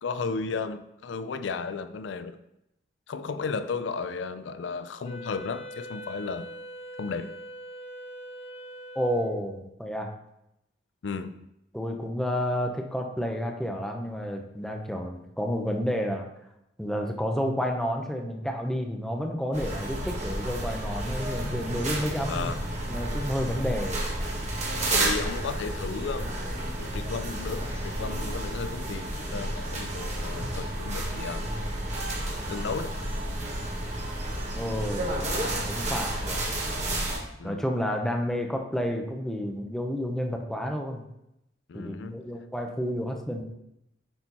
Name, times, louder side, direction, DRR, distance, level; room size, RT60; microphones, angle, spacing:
voice 1, 0.0-2.4 3.1-6.5 7.0-7.4 11.0-11.5 22.3-22.6 24.9-26.4 26.8-31.5 32.5-32.9 37.4-37.6 41.7-42.2, left 4 dB, 80° left, 12 dB, 0.4 m, -34 dB
Wind instrument woodwind instrument, 5.0-9.6, equal, 35° left, 1.1 m, -42 dB
voice 2, 8.9-10.1 11.7-16.2 16.8-22.6 22.9-24.0 34.5-35.2 35.7-36.4 37.4-41.0 41.7-43.4, equal, 5° left, 2 dB, 0.8 m, -30 dB
sound 1, 19.5-37.2, right 1 dB, 40° right, 1.7 m, -31 dB
8.8 x 4.3 x 4.0 m, 0.83 s
head